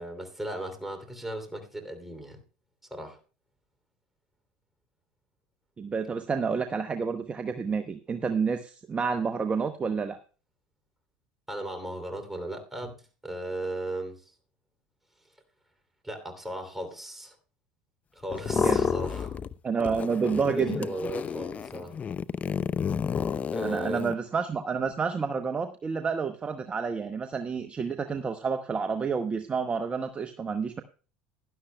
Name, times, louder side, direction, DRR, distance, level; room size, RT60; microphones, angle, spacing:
voice 1, 0.0-2.4 2.9-3.2 11.5-12.9 13.2-14.2 16.0-17.4 18.1-19.4 20.5-22.0 23.5-24.0, right 1 dB, 5° right, 2.9 m, -36 dB
voice 2, 5.8-10.2 18.5-18.9 19.6-20.9 23.6-30.8, right 5 dB, 25° right, 0.8 m, -29 dB
sound 1, 18.3-19.5 19.8-24.1, left 7 dB, 30° left, 0.5 m, -30 dB
16.0 x 11.5 x 2.2 m
hypercardioid pair, 85°, 5 cm